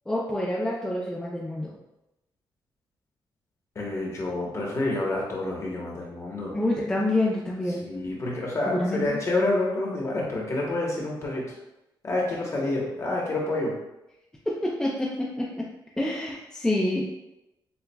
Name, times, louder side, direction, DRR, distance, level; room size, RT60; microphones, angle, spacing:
voice 1, 0.1-1.7 6.5-7.8 8.7-9.2 14.5-15.7 16.0-17.0, left 1 dB, 10° left, -4 dB, 0.4 m, -27 dB
voice 2, 3.7-6.5 7.8-11.4 12.0-13.7, left 2 dB, 35° left, -3 dB, 1.1 m, -28 dB
6.9 x 2.3 x 2.3 m, 0.92 s
wide cardioid pair, 150°, 8 cm